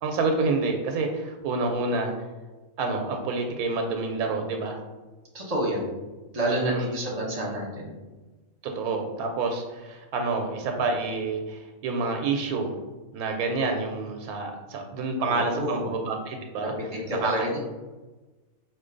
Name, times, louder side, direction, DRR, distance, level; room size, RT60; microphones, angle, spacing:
voice 1, 0.0-2.1 2.8-4.8 6.7-6.9 8.6-12.8 13.1-16.7 17.2-17.4, right 3 dB, 80° right, 3 dB, 1.0 m, -28 dB
voice 2, 5.3-5.9 6.3-8.0 15.2-15.9 16.6-17.6, right 1 dB, 30° right, -2 dB, 0.9 m, -29 dB
4.4 x 2.6 x 3.7 m, 1.2 s
omnidirectional pair, 1.5 m